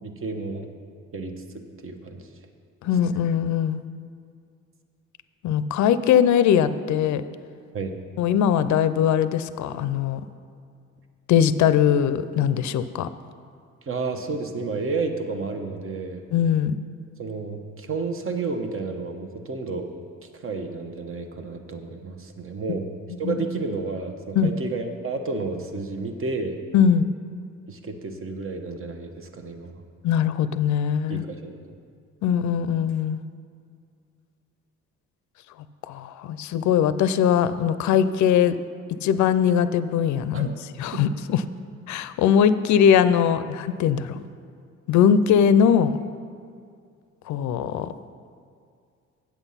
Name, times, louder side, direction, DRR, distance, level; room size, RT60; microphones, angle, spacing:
voice 1, 0.0-0.7 1.1-2.3 7.7-7.9 13.8-16.2 17.2-19.9 20.4-22.9 23.2-26.6 27.7-29.8 31.1-31.5 40.3-40.5 40.9-41.0, right 3 dB, 45° right, 5 dB, 1.1 m, -31 dB
voice 2, 2.8-3.8 5.4-7.2 8.2-10.2 11.3-13.1 16.3-16.8 23.2-23.4 24.4-24.5 26.7-27.0 30.0-31.2 32.2-33.2 35.9-38.6 39.0-40.5 40.8-41.4 41.9-44.2 44.9-45.9 47.3-47.9, left 8 dB, 70° left, 13 dB, 0.5 m, -21 dB
8.4 x 8.0 x 5.7 m, 2.3 s
cardioid pair, 90°, 30 cm